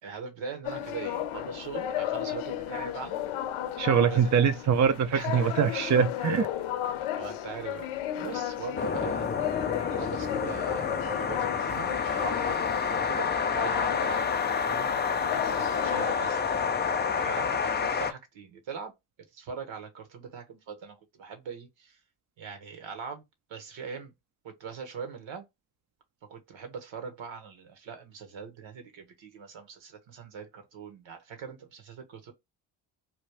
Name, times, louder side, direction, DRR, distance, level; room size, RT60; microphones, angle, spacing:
voice 1, 0.0-3.3 4.0-4.3 5.1-5.6 7.1-7.9 8.1-9.3 9.9-14.2 14.6-18.9 19.3-22.0 22.4-23.2 23.5-24.1 24.4-25.5 26.3-32.3, right 6 dB, 65° right, 1.2 m, -41 dB
sound 1, 0.6-16.2, left 11 dB, 75° left, 0.6 m, -34 dB
voice 2, 3.8-6.5, right 7 dB, 35° right, 0.5 m, -23 dB
sound 2, 8.8-18.1, left 6 dB, 25° left, 0.4 m, -29 dB
3.1 x 2.3 x 3.3 m
supercardioid pair, 65°, 49 cm